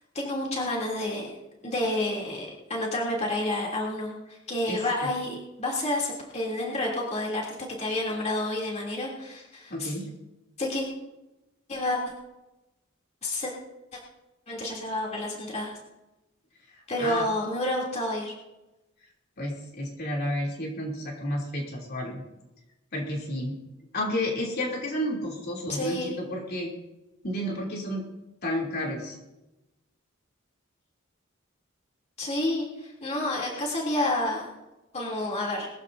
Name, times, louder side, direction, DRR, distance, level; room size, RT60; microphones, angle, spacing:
voice 1, 0.1-1.4 1.6-9.9 10.6-10.8 11.7-12.0 13.2-13.5 14.5-15.7 16.9-18.3 25.7-26.1 32.2-34.5 34.9-35.7, left 1 dB, 35° left, -3 dB, 3.2 m, -29 dB
voice 2, 4.7-5.1 9.7-10.1 17.0-17.3 19.4-22.2 22.9-23.6 23.9-26.7 27.2-28.0 28.4-29.2, left 1 dB, 50° left, -2 dB, 3.2 m, -31 dB
21.5 x 14.5 x 2.8 m, 1.0 s
head